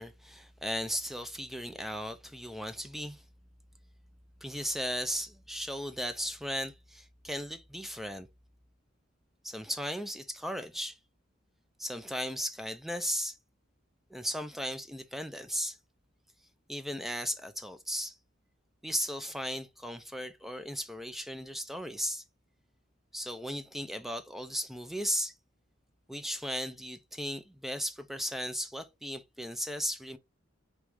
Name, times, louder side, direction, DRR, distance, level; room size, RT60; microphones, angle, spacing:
voice 1, 0.0-3.2 4.4-8.3 9.4-11.0 11.8-13.4 14.1-15.8 16.7-18.2 18.8-22.2 23.1-25.3 26.1-30.2, equal, ahead, 0.3 m, -36 dB
4.8 x 3.0 x 3.4 m
head